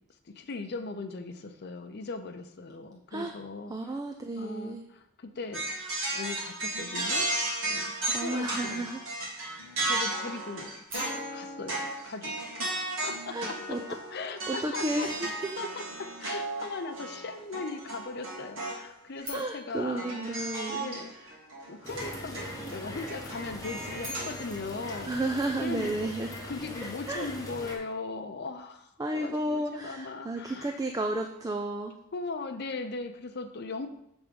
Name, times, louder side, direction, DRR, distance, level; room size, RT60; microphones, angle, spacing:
voice 1, 0.4-4.0 4.4-5.7 6.1-7.3 7.7-8.9 9.8-10.7 11.3-12.7 13.0-15.1 15.6-21.4 21.7-25.1 25.6-30.8 32.1-33.9, left 3 dB, 50° left, 7 dB, 0.6 m, -39 dB
voice 2, 3.7-4.8 8.1-9.0 13.3-13.8 14.5-15.5 19.3-20.9 24.9-26.3 27.1-27.3 29.0-31.9, right 1 dB, 15° right, 4 dB, 0.3 m, -32 dB
sound 1, 5.5-18.8 19.2-19.3 20.0-24.3, right 2 dB, 65° right, 2.1 m, -35 dB
sound 2, 10.9-13.0 19.2-21.4 23.7-26.1, left 1 dB, 40° right, 1.8 m, -46 dB
sound 3, 21.8-27.8, left 1 dB, 15° left, 0.9 m, -41 dB
7.3 x 3.6 x 5.1 m, 0.77 s
head